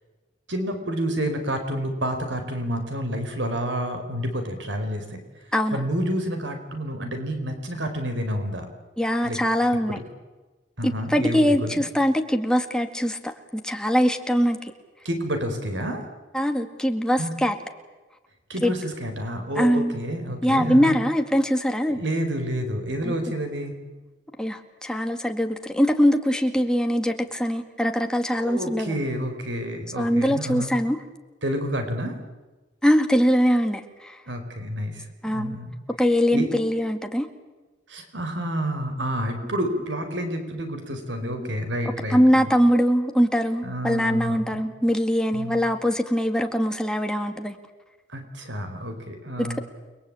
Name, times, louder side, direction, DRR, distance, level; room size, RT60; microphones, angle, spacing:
voice 1, 0.5-5.2 5.7-8.7 9.2-9.4 9.9-10.0 10.8-11.8 15.0-16.0 17.2-17.3 18.5-20.9 21.8-23.8 28.3-30.7 31.4-32.2 34.3-35.7 36.3-36.5 37.9-42.5 43.6-44.6 45.3-45.6 48.1-49.6, equal, 80° right, 6 dB, 4.7 m, -29 dB
voice 2, 9.0-10.0 10.8-14.6 16.3-17.6 18.6-18.7 19.6-20.0 20.4-22.0 23.0-23.1 24.4-29.0 30.0-31.0 32.8-34.2 35.2-35.6 36.0-37.3 41.2-41.5 42.1-47.6 49.4-49.6, equal, 5° left, 5 dB, 2.2 m, -22 dB
29.5 x 22.5 x 8.9 m, 1.2 s
head